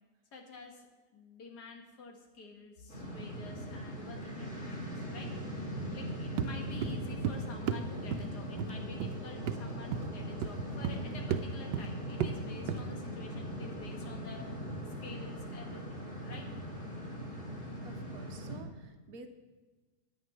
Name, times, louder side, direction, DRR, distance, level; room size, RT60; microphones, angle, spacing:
voice 1, 0.3-0.8 1.1-5.3 5.9-14.5 15.0-16.5, left 4 dB, 70° left, 2 dB, 2.0 m, -49 dB
sound 1, 2.9-18.6, equal, 45° left, 3.1 m, -40 dB
sound 2, 6.4-6.5 6.8-7.4 7.7-7.9 8.1-8.3 8.6-8.7 9.0-9.1 9.5-9.6 9.9-10.1 10.4-11.0 11.3-11.5 11.7-11.9 12.2-12.4 12.7-12.8, right 8 dB, 90° right, 1.2 m, -33 dB
voice 2, 17.8-19.3, right 4 dB, 65° right, 7 dB, 1.2 m, -51 dB
9.2 x 8.8 x 5.6 m, 1.2 s
omnidirectional pair, 1.8 m